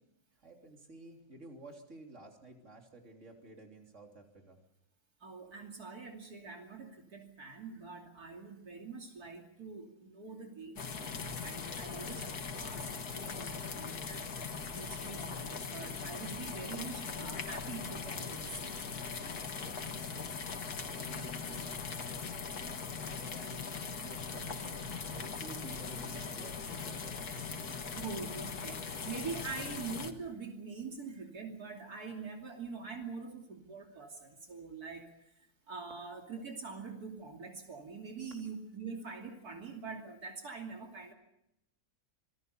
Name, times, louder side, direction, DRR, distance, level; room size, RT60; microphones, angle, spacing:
voice 1, 0.4-4.6 19.6-27.3, right 2 dB, 50° right, 2 dB, 3.8 m, -53 dB
voice 2, 5.2-14.3 14.7-18.8 27.9-41.1, right 4 dB, 80° right, 2 dB, 3.3 m, -44 dB
sound 1, 10.8-30.1, left 5 dB, 85° left, 2.2 m, -40 dB
27.0 x 20.0 x 6.9 m, 0.82 s
omnidirectional pair, 1.6 m